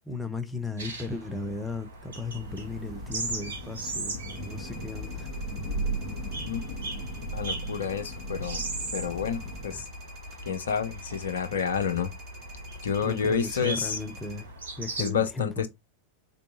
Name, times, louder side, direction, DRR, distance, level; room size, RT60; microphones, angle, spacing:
voice 1, 0.1-5.3 9.7-9.8 12.8-15.7, left 3 dB, 10° left, 0.5 m, -36 dB
sound 1, 0.8-15.1, right 2 dB, 70° right, 0.8 m, -39 dB
Thunder / Rain, 2.0-10.0, right 1 dB, 25° left, 1.1 m, -37 dB
sound 2, 4.4-14.5, equal, 25° right, 1.5 m, -50 dB
voice 2, 7.2-8.6 8.9-9.9 10.4-12.1 12.5-14.0 15.0-15.7, left 6 dB, 65° left, 0.5 m, -29 dB
3.4 x 2.6 x 2.6 m
figure-of-eight pair, 90°, 0 cm